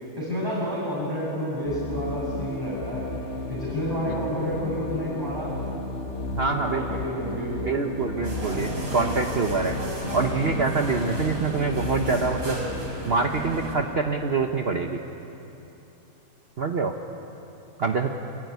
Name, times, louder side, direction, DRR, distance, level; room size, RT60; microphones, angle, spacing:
voice 1, 0.2-3.1 3.5-5.5 6.4-8.1, equal, 15° right, -8 dB, 7.2 m, -30 dB
sound 1, 1.6-12.9, left 2 dB, 55° left, 2.0 m, -33 dB
voice 2, 6.3-6.8 7.7-9.8 10.1-12.6 13.1-15.0 16.6-16.9 17.8-18.1, right 4 dB, 45° right, 3 dB, 1.3 m, -25 dB
sound 2, 8.2-13.7, right 1 dB, 75° right, 4.9 m, -33 dB
25.5 x 24.5 x 9.5 m, 3.0 s
omnidirectional pair, 1.5 m